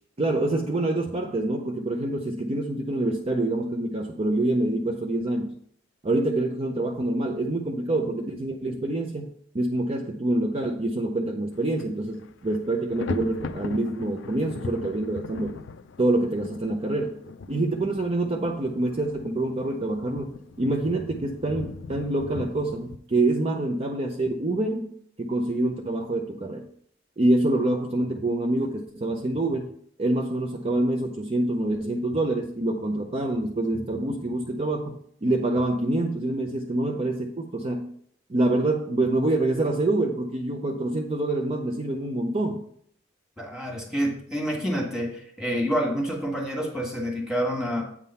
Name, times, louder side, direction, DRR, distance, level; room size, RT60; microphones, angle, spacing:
voice 1, 0.2-5.5 6.0-15.6 16.0-17.2 17.5-24.9 25.2-26.7 27.2-29.7 30.0-37.9 38.3-42.6, right 2 dB, 35° right, 2 dB, 0.6 m, -26 dB
Thunder, 11.5-11.8 12.1-23.0, left 4 dB, 75° left, 0.4 m, -39 dB
voice 2, 43.4-47.8, equal, 5° right, -1 dB, 1.6 m, -28 dB
8.3 x 3.7 x 5.5 m, 0.65 s
head